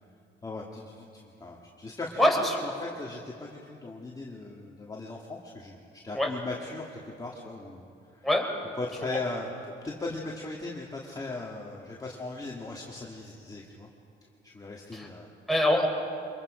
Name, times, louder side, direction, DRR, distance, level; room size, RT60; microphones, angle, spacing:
voice 1, 0.4-5.7 6.0-7.9 8.1-8.3 8.8-13.9 14.4-15.3, left 2 dB, 20° left, -2 dB, 1.9 m, -38 dB
voice 2, 2.2-2.5 6.1-6.3 8.2-8.4 9.1-9.2 14.9-15.1 15.5-15.9, left 1 dB, ahead, -1 dB, 3.8 m, -24 dB
24.5 x 21.5 x 5.0 m, 2.6 s
cardioid pair, 90°, 20 cm